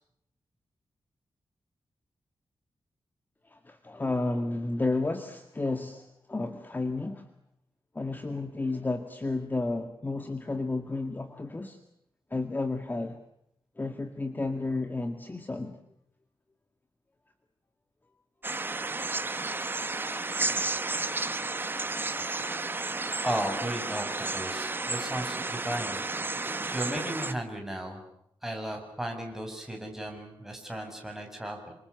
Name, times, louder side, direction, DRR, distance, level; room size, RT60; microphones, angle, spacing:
voice 1, 3.5-7.3 7.9-11.8 12.3-13.2 13.8-15.8 20.4-20.6, left 2 dB, 20° left, 7 dB, 2.0 m, -32 dB
sound 1, 18.4-27.3, right 3 dB, 25° right, 1.3 m, -32 dB
voice 2, 23.2-26.0 26.4-28.1 28.4-31.8, right 1 dB, 5° right, 2 dB, 7.1 m, -35 dB
29.0 x 26.5 x 7.0 m, 0.74 s
wide cardioid pair, 150°, 9 cm